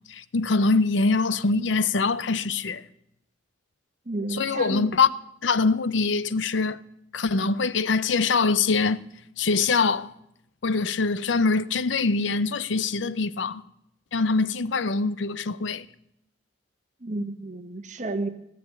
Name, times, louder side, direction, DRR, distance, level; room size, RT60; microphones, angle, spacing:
voice 1, 0.1-2.8 4.3-5.1 5.4-6.8 7.1-9.0 9.4-10.1 10.6-13.6 14.1-15.9, left 4 dB, 80° left, 0.6 m, -23 dB
voice 2, 4.0-4.9 17.0-18.3, right 2 dB, 40° right, 1.2 m, -31 dB
17.5 x 6.8 x 9.6 m
head